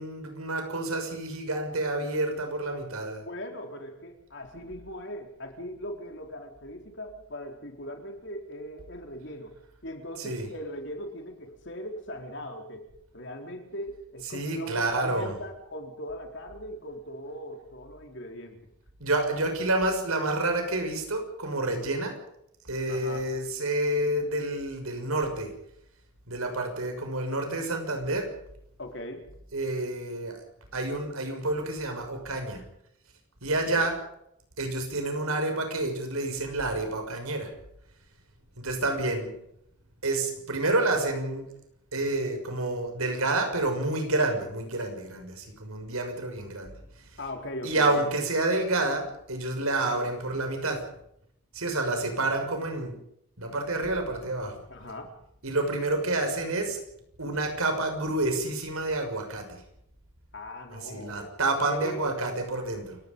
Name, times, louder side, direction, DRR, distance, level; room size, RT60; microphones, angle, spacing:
voice 1, 0.0-3.2 10.2-10.5 14.3-15.4 19.0-22.1 22.6-25.5 26.3-28.3 29.5-30.4 30.7-32.6 33.4-34.0 34.6-37.5 38.6-39.3 40.0-41.5 41.9-46.7 47.6-50.8 51.5-53.0 53.4-54.6 55.4-56.8 57.2-59.6 60.7-63.0, right 2 dB, 85° right, 5 dB, 6.1 m, -29 dB
voice 2, 3.2-12.9 13.1-18.6 22.9-23.3 28.8-29.3 33.7-33.9 47.2-48.2 54.7-55.1 60.3-61.4 61.7-62.2, left 1 dB, 55° left, 4 dB, 4.0 m, -39 dB
29.0 x 17.0 x 5.4 m, 0.75 s
head